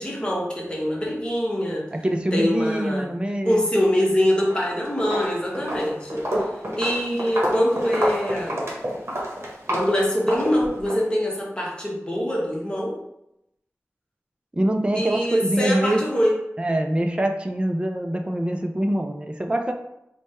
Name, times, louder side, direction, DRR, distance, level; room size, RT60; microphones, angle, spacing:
voice 1, 0.0-1.8 2.3-3.0 3.4-8.6 9.7-12.9 14.9-16.3, equal, 20° left, -4 dB, 1.0 m, -24 dB
voice 2, 1.9-3.7 14.5-16.0 16.6-19.7, right 1 dB, 20° right, 4 dB, 0.4 m, -24 dB
Walk footsteps, 4.4-4.7 5.0-11.0, equal, 55° right, 1.0 m, -28 dB
3.3 x 2.2 x 4.2 m, 0.84 s
wide cardioid pair, 75°, 5 cm